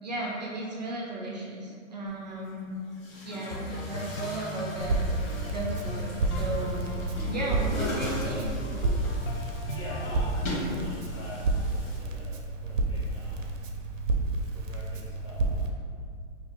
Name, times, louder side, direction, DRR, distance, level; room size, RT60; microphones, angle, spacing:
voice 1, 0.0-2.7 3.2-5.2 5.5-6.9 7.2-8.5 9.3-9.4, right 2 dB, 35° right, -4 dB, 0.4 m, -35 dB
Chatter / Gurgling / Tap, 2.1-2.2 2.9-12.0, left 1 dB, 90° left, 1.2 m, -39 dB
sound 1, 3.5-10.3, left 1 dB, 70° left, 0.7 m, -36 dB
Crackle, 4.8-15.7, right 2 dB, 80° right, 0.6 m, -31 dB
voice 2, 9.7-13.6 14.1-15.7, left 1 dB, 25° left, -7 dB, 0.4 m, -45 dB
2.9 x 2.4 x 4.2 m, 2.2 s
hypercardioid pair, 175°, 38 cm